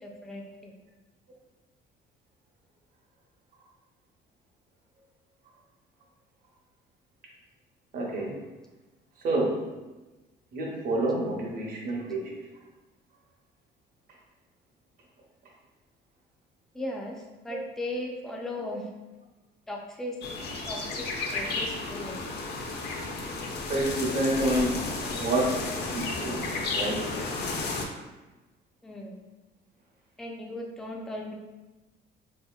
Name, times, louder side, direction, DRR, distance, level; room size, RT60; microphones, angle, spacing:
voice 1, 0.0-0.7 16.7-18.9 19.7-20.2 20.7-21.0 21.3-22.2 28.8-29.2 30.2-31.3, left 1 dB, ahead, -1 dB, 0.3 m, -37 dB
voice 2, 7.9-8.4 9.2-9.6 10.5-12.4 17.5-17.6 18.7-18.8 23.7-26.4 26.8-27.3, right 1 dB, 50° right, -3 dB, 0.8 m, -29 dB
sound 1, 20.2-27.9, left 3 dB, 60° left, 0.5 m, -33 dB
4.0 x 2.8 x 2.3 m, 1.1 s
cardioid pair, 150°, 19 cm